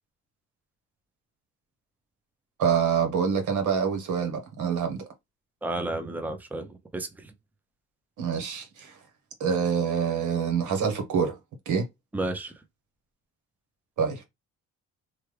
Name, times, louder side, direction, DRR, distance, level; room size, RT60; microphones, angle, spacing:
voice 1, 2.6-5.0 8.2-9.0 9.4-11.4 11.7-11.8 14.0-14.2, right 6 dB, 80° right, 1.2 m, -26 dB
voice 2, 5.6-7.3 12.1-12.5, right 2 dB, 5° right, 0.6 m, -32 dB
3.2 x 2.3 x 3.2 m
cardioid pair, 90°, 30 cm